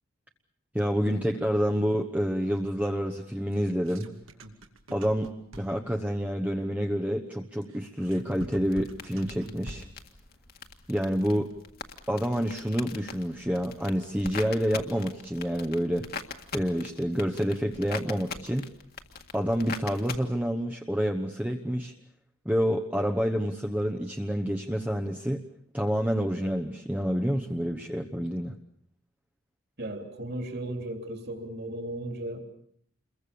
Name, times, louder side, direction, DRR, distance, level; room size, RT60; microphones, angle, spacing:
voice 1, 0.7-4.1 4.9-9.9 10.9-11.5 12.1-16.1 16.5-18.7 19.3-21.9 22.4-25.4 25.7-28.5, equal, 5° right, 3 dB, 1.0 m, -28 dB
sound 1, 3.5-6.0 7.6-10.1, right 1 dB, 75° right, 2.6 m, -45 dB
sound 2, 8.2-20.2, left 5 dB, 45° left, 1.9 m, -43 dB
voice 2, 29.8-32.4, right 1 dB, 50° right, 5 dB, 3.4 m, -35 dB
28.5 x 22.5 x 7.0 m, 0.66 s
head